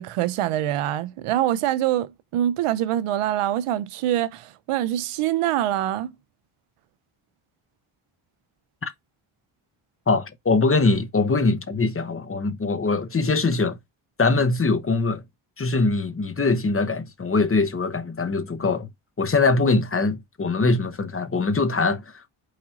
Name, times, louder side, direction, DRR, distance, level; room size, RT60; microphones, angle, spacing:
voice 1, 0.0-6.1, right 12 dB, 90° right, 0.6 m, -24 dB
voice 2, 10.1-13.8 14.2-15.2 15.6-18.9 19.2-22.3, left 3 dB, 25° left, 0.8 m, -22 dB
4.8 x 4.3 x 2.4 m
cardioid pair, 70°, 50 cm